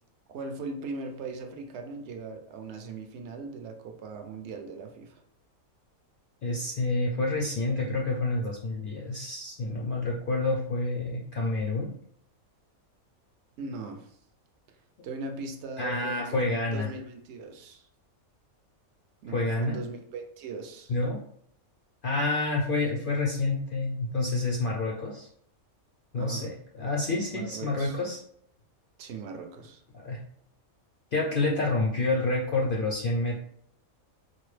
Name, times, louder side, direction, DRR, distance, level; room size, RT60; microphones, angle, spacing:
voice 1, 0.3-5.2 13.6-14.2 15.0-16.5 16.7-17.9 19.2-21.0 26.1-26.5 27.3-28.0 29.0-29.8, right 4 dB, 65° right, 5 dB, 0.7 m, -39 dB
voice 2, 6.4-11.9 15.8-16.9 19.3-19.8 20.9-21.2 22.0-25.3 26.1-28.2 30.0-30.2 31.1-33.4, left 2 dB, 65° left, -1 dB, 0.5 m, -28 dB
4.4 x 2.0 x 3.2 m, 0.67 s
omnidirectional pair, 1.5 m